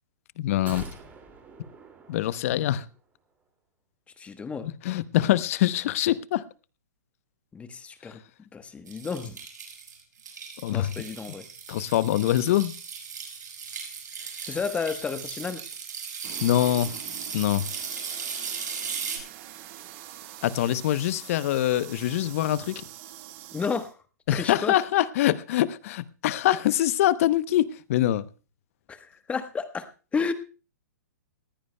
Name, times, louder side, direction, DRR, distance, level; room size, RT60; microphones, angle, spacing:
voice 1, 0.4-0.9 2.1-2.9 4.8-6.4 8.0-8.1 10.6-10.9 11.7-12.7 16.4-16.9 17.3-17.7 20.4-22.8 24.3-28.3, left 13 dB, 50° left, 0.8 m, -24 dB
sound 1, 0.7-3.0 3.3-3.4, right 4 dB, 15° right, 2.4 m, -45 dB
voice 2, 4.2-4.7 7.5-8.2 8.5-9.4 10.7-11.5 14.2-15.6 23.5-24.0 24.3-24.8 28.9-30.3, left 5 dB, 15° left, 1.1 m, -32 dB
sound 2, 8.9-19.2, right 6 dB, 75° right, 6.0 m, -37 dB
sound 3, 16.2-23.9, right 12 dB, 45° right, 1.7 m, -45 dB
20.5 x 15.5 x 2.2 m
hypercardioid pair, 125°, 10 cm